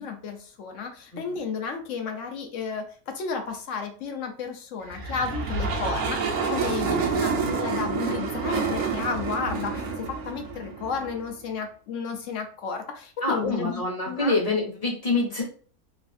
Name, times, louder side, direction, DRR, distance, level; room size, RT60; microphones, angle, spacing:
voice 1, 0.0-14.4, left 5 dB, 65° left, 5 dB, 0.9 m, -32 dB
sound 1, 4.9-11.3, right 4 dB, 65° right, 1.0 m, -28 dB
voice 2, 13.2-15.4, left 2 dB, 30° left, -2 dB, 0.7 m, -26 dB
3.2 x 2.7 x 2.5 m, 0.43 s
omnidirectional pair, 1.6 m